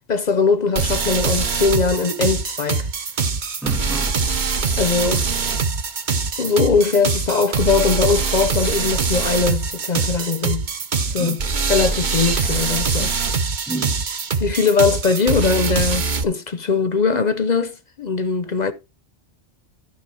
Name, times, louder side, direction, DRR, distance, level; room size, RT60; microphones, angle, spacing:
voice 1, 0.1-2.9 4.8-5.3 6.4-10.6 11.1-11.4 11.7-13.1 14.4-18.7, left 5 dB, 45° left, 0.7 m, -20 dB
sound 1, 0.8-16.2, right 4 dB, 45° right, 0.9 m, -23 dB
voice 2, 3.6-4.1 11.2-11.4 13.7-13.9, right 2 dB, ahead, 0.4 m, -29 dB
12.0 x 4.8 x 4.7 m
omnidirectional pair, 1.1 m